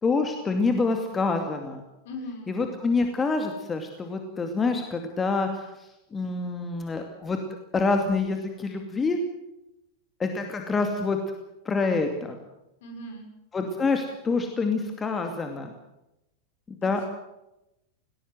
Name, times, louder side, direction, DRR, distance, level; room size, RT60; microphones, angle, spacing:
voice 1, 0.0-1.8 2.5-5.7 6.1-7.4 7.7-9.2 10.2-11.2 11.6-12.4 13.5-15.7 16.8-17.0, left 4 dB, 15° left, 5 dB, 2.4 m, -26 dB
voice 2, 2.0-2.5 12.8-13.3 16.8-17.1, left 1 dB, 55° left, 4 dB, 6.1 m, -39 dB
19.0 x 19.0 x 7.8 m, 0.89 s
figure-of-eight pair, 90°, 0 cm